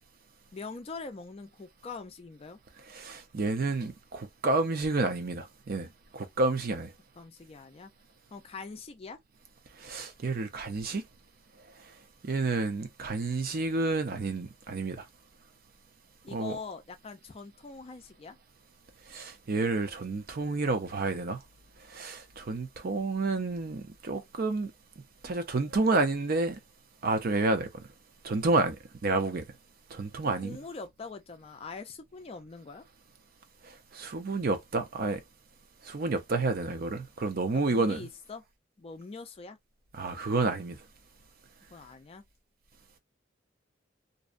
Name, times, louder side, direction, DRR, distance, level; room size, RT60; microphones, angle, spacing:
voice 1, 0.5-2.6 7.2-7.9 8.3-9.2 16.2-18.4 30.2-32.8 37.5-38.4 38.8-39.6 41.7-42.2, left 4 dB, 30° left, 0.4 m, -43 dB
voice 2, 2.9-5.9 6.1-6.9 9.8-11.0 12.2-15.0 16.3-16.6 19.1-21.4 21.9-24.7 25.2-26.6 27.0-27.8 28.2-28.8 29.0-29.5 29.9-30.6 33.6-35.2 35.8-38.1 39.9-40.8, right 3 dB, 55° right, 0.5 m, -30 dB
2.6 x 2.1 x 2.4 m
head